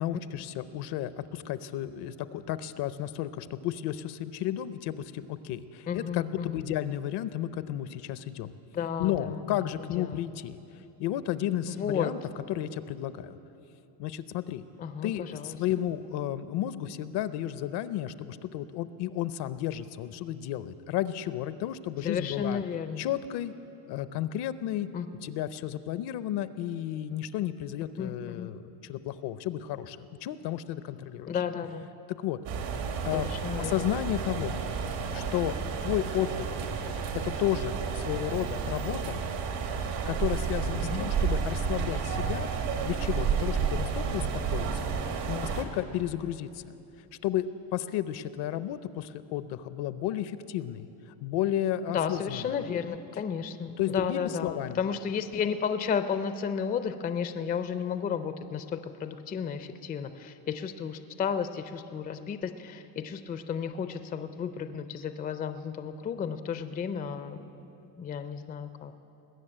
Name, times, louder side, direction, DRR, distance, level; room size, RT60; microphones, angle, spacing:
voice 1, 0.0-8.5 9.0-10.6 11.0-12.2 12.5-13.4 14.0-14.6 15.0-22.6 23.0-23.5 23.9-24.9 25.2-31.3 32.2-32.4 33.0-33.3 33.6-34.6 35.1-36.6 37.2-39.2 40.1-42.5 42.8-44.9 45.3-46.6 47.2-50.9 51.2-52.6 53.8-54.8, left 12 dB, 65° left, 14 dB, 0.6 m, -32 dB
voice 2, 5.9-6.6 8.7-10.2 11.7-12.1 14.8-15.5 22.0-23.0 24.9-25.1 28.0-28.5 31.3-31.9 33.1-33.9 40.8-41.0 51.9-67.5 68.0-68.9, left 7 dB, 20° left, 10 dB, 0.4 m, -33 dB
sound 1, 32.5-45.6, right 6 dB, 75° right, 1.7 m, -31 dB
20.5 x 6.8 x 8.8 m, 2.9 s
cardioid pair, 145°, 44 cm